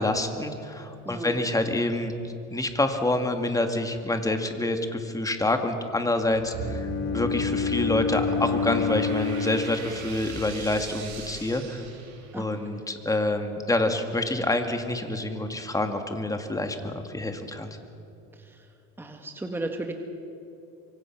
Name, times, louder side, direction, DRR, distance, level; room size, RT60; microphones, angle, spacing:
voice 1, 0.0-6.9 7.1-11.8 12.3-17.8, left 2 dB, 10° left, 6 dB, 2.0 m, -27 dB
voice 2, 1.0-1.4 12.3-12.6 18.4-18.6 19.0-19.9, right 2 dB, 5° right, 4 dB, 1.5 m, -34 dB
sound 1, 6.3-12.6, right 3 dB, 55° right, 6.9 m, -39 dB
Bowed string instrument, 6.5-10.6, left 5 dB, 40° left, 0.9 m, -29 dB
25.5 x 23.5 x 6.0 m, 2.9 s
cardioid pair, 130°, 34 cm